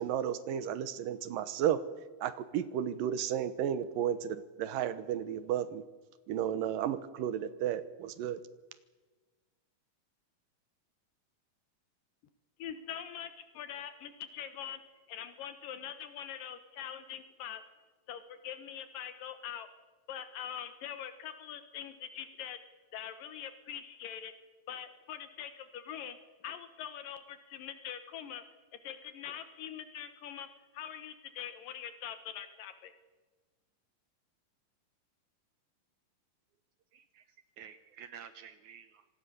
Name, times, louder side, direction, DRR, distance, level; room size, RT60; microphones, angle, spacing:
voice 1, 0.0-1.8 2.2-5.8 6.3-8.4, right 10 dB, 90° right, 14 dB, 2.8 m, -33 dB
voice 2, 12.6-14.8 15.1-17.6 18.1-19.7 20.1-22.6 22.9-24.3 24.7-26.2 26.4-28.4 28.7-30.5 30.7-32.9, left 9 dB, 80° left, 10 dB, 3.0 m, -43 dB
voice 3, 36.9-39.1, right 8 dB, 70° right, 11 dB, 2.2 m, -51 dB
26.0 x 19.0 x 6.9 m, 1.3 s
omnidirectional pair, 3.9 m